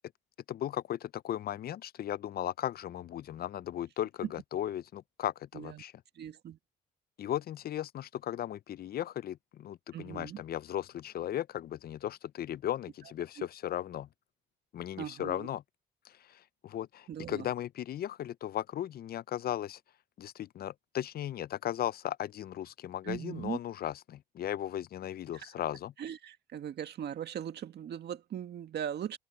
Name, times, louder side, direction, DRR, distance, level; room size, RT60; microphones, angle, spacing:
voice 1, 0.5-5.9 7.2-14.1 14.7-15.6 16.1-19.8 20.2-25.9, left 11 dB, 55° left, 0.5 m, -36 dB
voice 2, 6.2-6.6 9.9-10.4 13.4-13.5 15.0-15.5 17.1-17.5 23.0-23.6 25.3-25.5 26.0-29.2, right 9 dB, 65° right, 1.9 m, -39 dB
open air
supercardioid pair, 70°, 19 cm